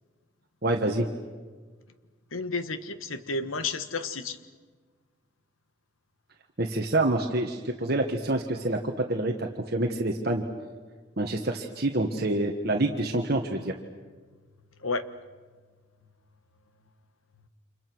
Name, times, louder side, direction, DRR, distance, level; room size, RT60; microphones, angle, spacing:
voice 1, 0.6-1.1 6.6-10.4 11.2-13.7, right 2 dB, 50° right, 3 dB, 1.5 m, -27 dB
voice 2, 2.3-4.4 14.8-15.1, left 3 dB, 90° left, 11 dB, 1.4 m, -31 dB
30.0 x 27.5 x 6.3 m, 1.5 s
head